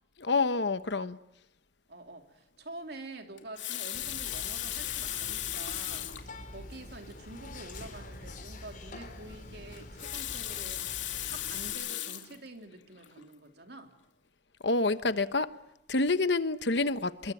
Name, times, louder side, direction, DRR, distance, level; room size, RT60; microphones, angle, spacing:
voice 1, 0.2-1.2 14.6-15.5 15.9-17.3, left 3 dB, 65° left, 1.1 m, -28 dB
voice 2, 1.9-11.0 11.3-14.0, right 2 dB, 60° right, 3.2 m, -47 dB
Water tap faucet, 3.4-6.3 7.1-7.2 7.5-7.6 9.8-12.4 13.0-13.2, left 12 dB, 80° left, 2.5 m, -36 dB
Whispering, 3.9-11.7, left 2 dB, 45° left, 4.8 m, -46 dB
28.0 x 22.0 x 9.2 m
head